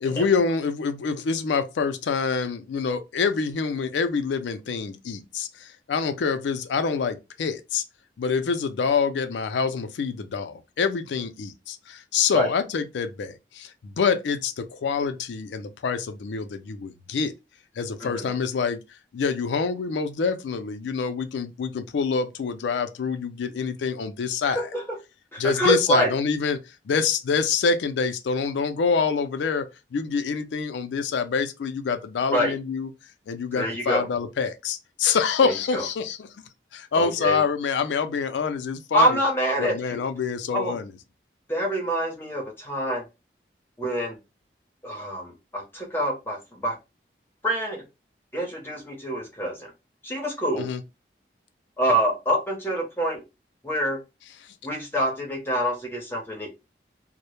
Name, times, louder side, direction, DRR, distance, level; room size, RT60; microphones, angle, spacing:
voice 1, 0.0-7.8 8.2-17.3 17.8-18.8 19.1-24.7 25.4-26.6 26.9-32.9 33.3-36.3 36.7-39.2 39.6-40.9 50.6-50.8, left 5 dB, 85° left, 0.4 m, -26 dB
voice 2, 18.0-18.3 24.4-25.0 25.3-26.1 32.3-32.5 33.5-34.1 35.4-35.8 36.9-37.4 38.9-40.0 40.5-40.8 41.5-43.0 43.8-44.2 44.8-46.8 47.4-47.8 48.3-49.7 50.0-50.7 51.8-53.2 53.6-54.0 54.6-56.5, right 1 dB, 15° left, 0.6 m, -26 dB
2.0 x 2.0 x 2.9 m
head